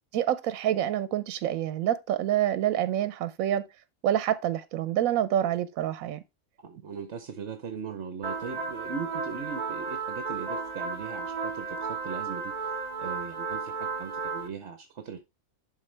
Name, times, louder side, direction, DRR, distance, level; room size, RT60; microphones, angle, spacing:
voice 1, 0.1-3.6 4.0-6.2, right 11 dB, 85° right, 1.0 m, -27 dB
voice 2, 6.6-15.2, right 6 dB, 60° right, 1.1 m, -39 dB
sound 1, 8.2-14.5, right 4 dB, 30° right, 1.7 m, -34 dB
11.5 x 3.9 x 3.3 m
omnidirectional pair, 1.4 m